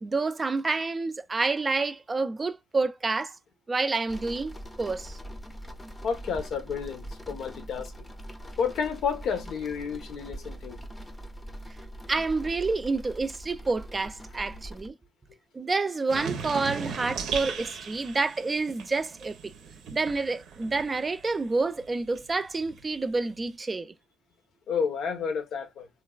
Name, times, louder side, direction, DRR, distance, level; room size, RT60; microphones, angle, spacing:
voice 1, 0.0-3.3 3.7-5.2 12.1-14.9 15.5-19.4 19.9-23.9, right 3 dB, 30° right, 0.3 m, -28 dB
sound 1, 4.1-14.9, equal, 15° left, 0.6 m, -42 dB
voice 2, 6.0-8.1 8.6-10.8 24.7-25.9, left 6 dB, 75° left, 0.7 m, -31 dB
sound 2, 16.1-21.4 21.8-23.5, right 6 dB, 80° right, 0.6 m, -38 dB
3.1 x 2.1 x 2.3 m
cardioid pair, 90°, 0 cm